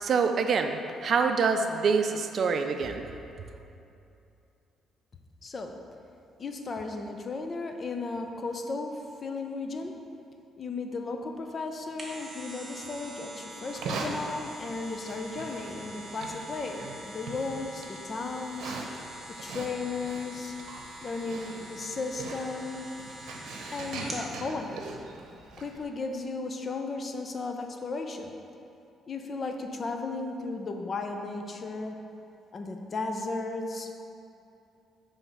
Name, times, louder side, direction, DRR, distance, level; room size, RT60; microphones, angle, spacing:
voice 1, 0.0-3.0, right 5 dB, 50° right, 6 dB, 0.4 m, -26 dB
voice 2, 5.4-5.7 6.4-9.9 10.6-18.7 19.3-20.5 21.0-22.9 23.7-24.7 25.6-28.3 29.1-32.0 32.5-33.9, left 3 dB, 40° left, 4 dB, 0.6 m, -35 dB
sound 1, 11.7-24.3 24.7-24.8, right 1 dB, 10° right, 1.2 m, -44 dB
Livestock farm animals working animals, 13.6-25.8, right 3 dB, 75° right, 0.8 m, -41 dB
7.5 x 3.5 x 5.4 m, 2.7 s
cardioid pair, 105°, 0 cm